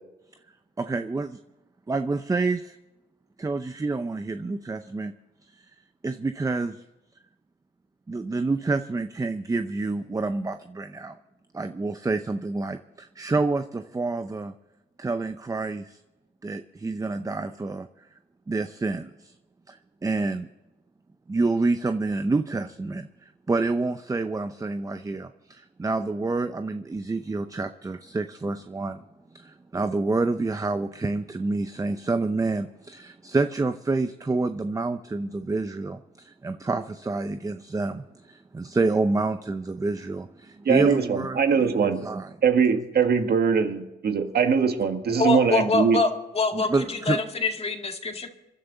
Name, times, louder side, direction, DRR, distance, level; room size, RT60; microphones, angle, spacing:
voice 1, 0.8-1.4 1.9-2.8 3.4-5.1 6.0-6.8 8.1-11.2 11.5-14.5 15.0-16.0 16.4-17.9 18.5-19.3 19.7-20.5 21.3-29.0 29.3-42.3 46.5-47.2, right 3 dB, 15° right, 9 dB, 0.7 m, -28 dB
voice 2, 40.7-42.1 42.4-46.0, right 6 dB, 55° right, 6 dB, 1.8 m, -22 dB
voice 3, 45.1-48.3, left 3 dB, 30° left, 4 dB, 2.0 m, -25 dB
27.5 x 11.0 x 4.0 m, 1.0 s
cardioid pair, 90°, 20 cm